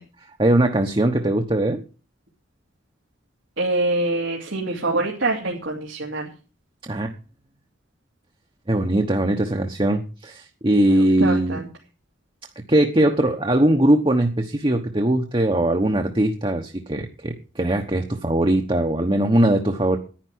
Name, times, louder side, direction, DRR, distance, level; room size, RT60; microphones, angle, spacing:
voice 1, 0.4-1.8 6.8-7.1 8.7-11.6 12.7-20.0, right 1 dB, 25° right, 4 dB, 1.0 m, -20 dB
voice 2, 3.6-6.3 10.9-11.7, right 2 dB, 90° right, -1 dB, 2.6 m, -25 dB
10.5 x 10.5 x 6.2 m, 0.35 s
head